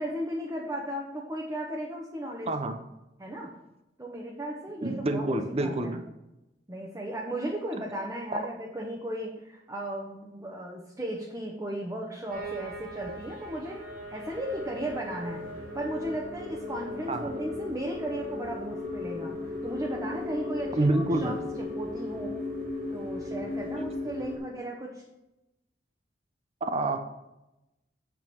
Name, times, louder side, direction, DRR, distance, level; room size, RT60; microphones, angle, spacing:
voice 1, 0.0-2.5 3.2-3.5 4.0-6.0 6.7-13.8 14.1-15.4 15.7-19.4 19.6-22.3 22.9-25.0, right 1 dB, 20° right, -2 dB, 1.0 m, -35 dB
voice 2, 2.5-2.8 4.8-6.0 17.1-17.3 20.8-21.4 26.6-27.0, right 2 dB, 35° right, 7 dB, 0.7 m, -27 dB
sound 1, 12.3-24.4, left 2 dB, 60° right, 2.2 m, -37 dB
9.0 x 3.9 x 7.0 m, 0.93 s
head